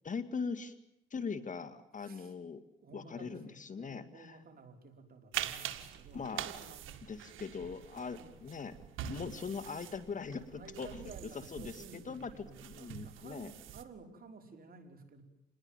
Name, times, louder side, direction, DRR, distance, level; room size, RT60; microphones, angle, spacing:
voice 1, 0.0-0.7 1.1-2.6 2.9-4.4 6.1-6.4 7.1-8.7 9.0-11.1 11.5-12.3 12.6-13.5, left 5 dB, 40° left, 9 dB, 2.1 m, -41 dB
voice 2, 2.0-2.3 2.8-7.1 7.9-8.3 10.5-15.2, right 4 dB, 50° right, 5 dB, 5.4 m, -54 dB
sound 1, 5.3-13.8, right 11 dB, 85° right, 2.0 m, -44 dB
28.0 x 20.5 x 9.0 m, 0.79 s
cardioid pair, 90°, 20 cm